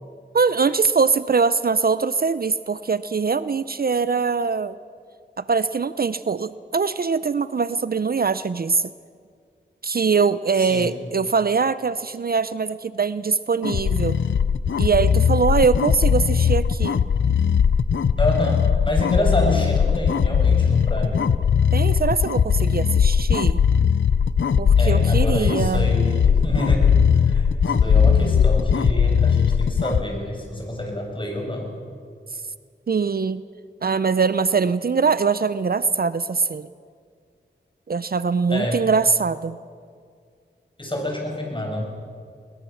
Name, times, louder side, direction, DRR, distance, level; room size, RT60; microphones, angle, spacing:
voice 1, 0.3-4.7 5.4-8.9 9.8-14.2 14.8-17.0 21.7-23.6 24.6-25.9 32.9-33.4 33.8-36.7 37.9-39.6, right 5 dB, 55° right, 15 dB, 0.6 m, -22 dB
voice 2, 10.6-10.9 18.2-21.3 24.8-31.7 38.5-38.8 40.8-41.8, left 1 dB, 25° left, 1 dB, 7.0 m, -27 dB
sound 1, 13.6-30.0, left 7 dB, 85° left, 0.6 m, -19 dB
21.5 x 21.0 x 7.1 m, 2.1 s
wide cardioid pair, 60°, 19 cm